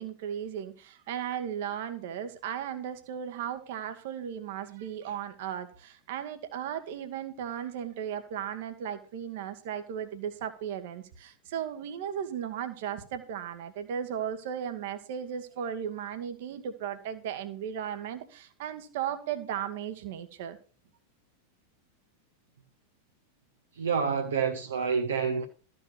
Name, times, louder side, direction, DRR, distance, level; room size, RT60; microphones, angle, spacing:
voice 1, 0.0-20.6, right 9 dB, 50° right, 1.5 m, -36 dB
voice 2, 23.7-25.4, right 6 dB, 70° right, 1.1 m, -28 dB
13.0 x 5.4 x 6.2 m
figure-of-eight pair, 90°, 0 cm